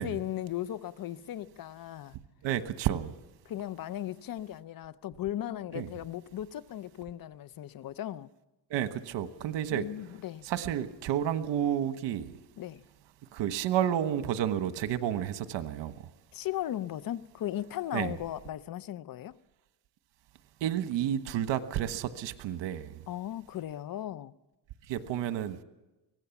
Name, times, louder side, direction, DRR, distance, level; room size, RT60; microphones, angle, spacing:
voice 1, 0.0-2.2 3.5-8.3 9.7-10.5 12.6-12.8 16.3-19.3 23.1-24.3, left 12 dB, 55° left, 0.7 m, -37 dB
voice 2, 2.4-3.1 5.7-5.9 8.7-9.9 10.4-12.3 13.3-15.9 17.9-18.1 20.6-22.9 24.9-25.6, right 10 dB, 85° right, 1.3 m, -30 dB
23.5 x 17.5 x 7.1 m
cardioid pair, 110°, 43 cm